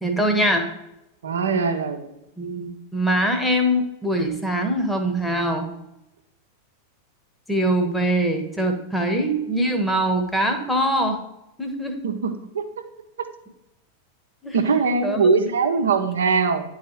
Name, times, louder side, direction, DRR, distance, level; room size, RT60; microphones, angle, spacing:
voice 1, 0.0-0.7 2.4-5.7 7.5-11.2 11.6-12.0 14.4-14.6 15.0-15.2, right 1 dB, 5° left, 3 dB, 1.2 m, -23 dB
voice 2, 1.2-2.1 12.0-12.6 14.5-16.6, right 4 dB, 65° right, 6 dB, 0.8 m, -21 dB
10.0 x 4.0 x 3.1 m, 0.89 s
figure-of-eight pair, 90°, 0 cm